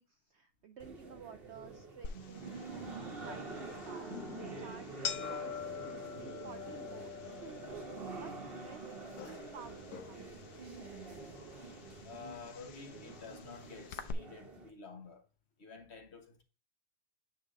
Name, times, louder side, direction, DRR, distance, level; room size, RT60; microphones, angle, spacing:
voice 1, 0.0-7.8 8.2-8.4 8.6-8.9 9.2-10.3, right 7 dB, 70° right, 0.6 m, -53 dB
sound 1, 0.8-14.7, right 3 dB, 40° right, 1.2 m, -47 dB
sound 2, 2.0-14.1, left 8 dB, 90° left, 1.3 m, -46 dB
sound 3, 3.9-9.4, right 1 dB, 5° left, 0.4 m, -56 dB
voice 2, 12.0-15.2 15.6-16.4, left 5 dB, 45° left, 1.4 m, -50 dB
8.8 x 3.4 x 3.8 m
omnidirectional pair, 1.6 m